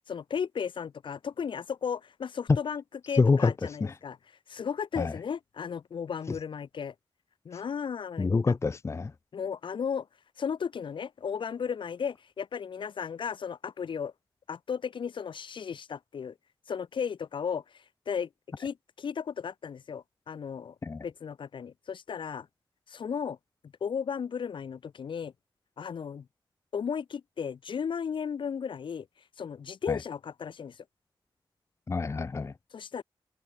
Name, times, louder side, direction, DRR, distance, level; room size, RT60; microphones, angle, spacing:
voice 1, 0.1-4.2 4.5-6.9 7.4-8.5 9.3-10.1 10.4-14.1 14.5-16.3 16.7-18.3 18.6-20.7 21.0-22.5 22.9-23.4 23.8-25.3 25.8-26.3 26.7-29.1 29.4-30.8 32.7-33.0, left 7 dB, 70° left, 0.8 m, -35 dB
voice 2, 3.2-3.5 3.8-3.9 5.0-5.1 8.2-9.1 20.8-21.0 29.9-30.0 31.9-32.5, left 4 dB, 35° left, 0.5 m, -26 dB
wide cardioid pair, 90°, 9 cm